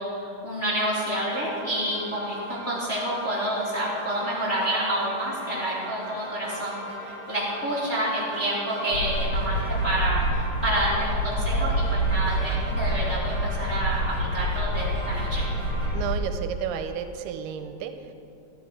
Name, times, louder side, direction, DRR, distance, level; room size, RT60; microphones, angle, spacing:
voice 1, 0.0-15.4, right 1 dB, 25° left, -8 dB, 1.6 m, -28 dB
sound 1, 0.9-15.9, equal, 45° right, 1.6 m, -40 dB
sound 2, 8.9-16.2, equal, 70° left, 1.4 m, -27 dB
voice 2, 15.9-18.1, right 8 dB, 90° right, 8 dB, 2.7 m, -32 dB
14.0 x 9.7 x 4.9 m, 2.8 s
omnidirectional pair, 4.5 m